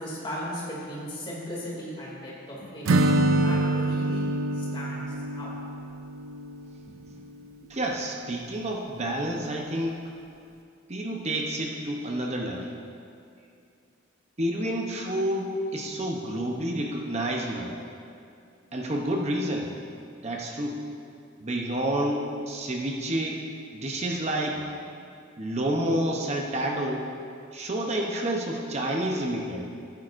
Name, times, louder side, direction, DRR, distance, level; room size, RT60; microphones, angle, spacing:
voice 1, 0.0-3.1 3.4-5.0 5.3-5.5 7.1-7.2, equal, 25° left, -5 dB, 2.5 m, -37 dB
Acoustic guitar / Strum, 2.8-6.8, right 1 dB, 85° right, 0.6 m, -25 dB
voice 2, 7.7-10.0 10.9-12.7 14.4-17.7 18.7-19.7 20.2-20.8 21.4-23.4 23.7-24.7 25.4-27.1 27.5-29.7, right 1 dB, 30° right, 0 dB, 0.8 m, -29 dB
14.0 x 10.5 x 2.6 m, 2.4 s
head